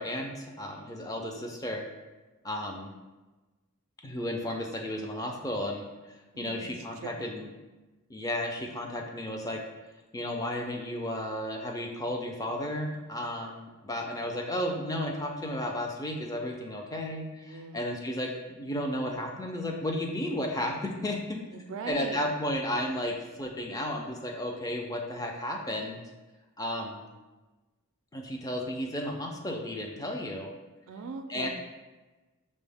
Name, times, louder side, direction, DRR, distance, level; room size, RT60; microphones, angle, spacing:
voice 1, 0.0-1.9 2.4-2.9 4.0-5.8 6.4-7.5 8.1-9.6 10.1-21.4 21.9-26.0 26.6-27.1 28.1-30.5 31.3-31.5, left 1 dB, 15° left, 1 dB, 0.4 m, -33 dB
voice 2, 6.3-7.4 17.5-17.8 21.5-22.2 30.9-31.5, right 5 dB, 65° right, 6 dB, 0.3 m, -40 dB
5.1 x 2.0 x 3.4 m, 1.2 s
head